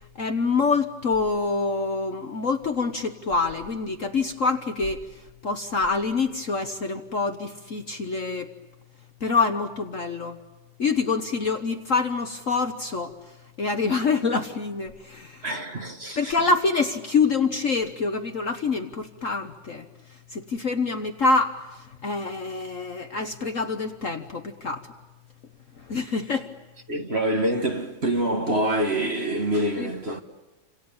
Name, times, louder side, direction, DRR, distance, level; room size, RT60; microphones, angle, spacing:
voice 1, 0.1-8.5 9.2-10.4 10.8-13.1 13.6-15.5 16.2-19.9 20.3-24.9 25.8-26.5 29.8-29.9, left 4 dB, 45° left, 1.3 m, -26 dB
voice 2, 15.4-16.3 26.9-30.2, right 1 dB, 35° right, 1.6 m, -26 dB
29.0 x 27.0 x 7.2 m
omnidirectional pair, 2.2 m